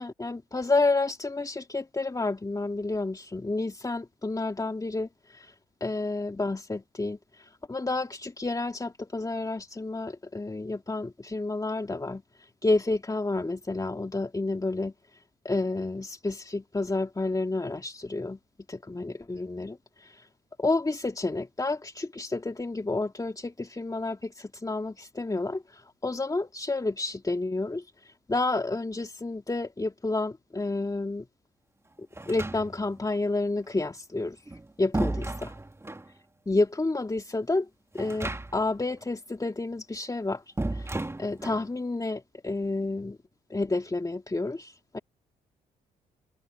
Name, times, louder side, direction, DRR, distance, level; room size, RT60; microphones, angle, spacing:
voice 1, 0.0-18.4 18.7-20.3 20.6-31.3 32.3-35.5 36.5-37.7 37.9-43.2 43.5-45.0, left 2 dB, 20° left, 2.4 m, -30 dB
sound 1, 32.1-33.0 34.3-36.1 37.9-38.8 39.0-39.1 40.6-41.7, right 2 dB, 15° right, 2.0 m, -33 dB
hypercardioid pair, 50°, 18 cm